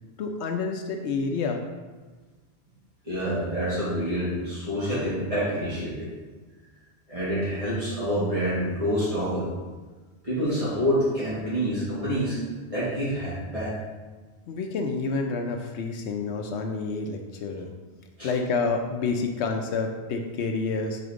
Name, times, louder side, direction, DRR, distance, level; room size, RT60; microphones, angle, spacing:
voice 1, 0.2-1.6 14.5-17.7 18.2-21.0, left 4 dB, 85° left, 4 dB, 0.9 m, -28 dB
voice 2, 3.0-6.1 7.1-9.5 10.2-12.4 12.7-13.8 18.2-18.4, equal, 30° right, -11 dB, 1.9 m, -27 dB
5.1 x 3.9 x 4.9 m, 1.3 s
omnidirectional pair, 1.1 m